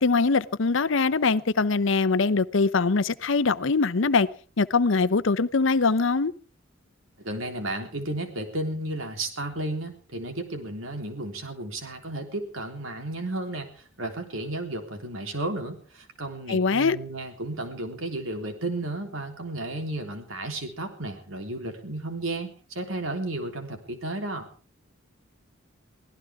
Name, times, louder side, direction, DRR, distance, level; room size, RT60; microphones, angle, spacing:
voice 1, 0.0-4.3 4.6-6.3 16.5-17.0, left 4 dB, 65° left, 0.7 m, -22 dB
voice 2, 7.2-13.7 14.0-24.5, right 2 dB, 85° right, 3.6 m, -33 dB
24.0 x 16.5 x 3.6 m
head